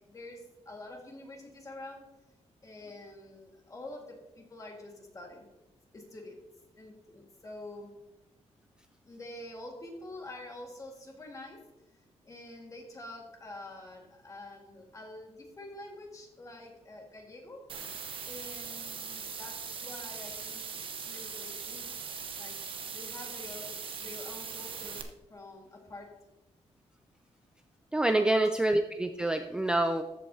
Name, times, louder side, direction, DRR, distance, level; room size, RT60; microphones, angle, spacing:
voice 1, 0.1-2.1 2.6-5.5 5.9-6.4 6.8-7.9 9.0-11.6 12.2-17.7 18.3-21.9 22.4-23.7 24.0-25.0 25.3-26.2 28.3-28.5, left 1 dB, 30° left, 1 dB, 1.8 m, -47 dB
sound 1, 17.7-25.0, right 6 dB, 50° right, 1.0 m, -40 dB
voice 2, 27.9-30.0, right 1 dB, 5° right, 6 dB, 0.4 m, -26 dB
14.0 x 7.8 x 2.8 m, 0.98 s
wide cardioid pair, 155°, 12 cm